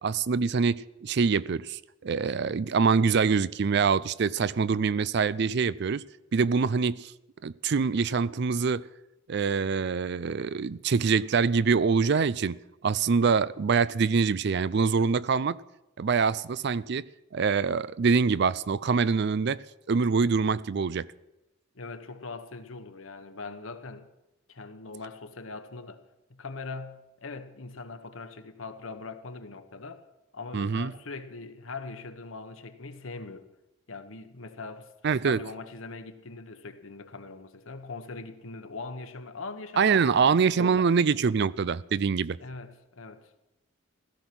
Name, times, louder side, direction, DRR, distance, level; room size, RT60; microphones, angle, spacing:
voice 1, 0.0-6.0 6.3-7.1 7.4-8.9 9.3-12.6 12.8-15.6 16.0-17.1 17.3-21.1 30.5-30.9 35.0-35.4 39.8-42.4, right 5 dB, 55° right, 0.4 m, -25 dB
voice 2, 21.7-24.1 24.5-26.0 26.3-30.0 30.3-33.5 33.9-34.9 35.2-40.6 42.4-43.3, left 3 dB, 85° left, 1.3 m, -41 dB
16.0 x 13.5 x 6.1 m
head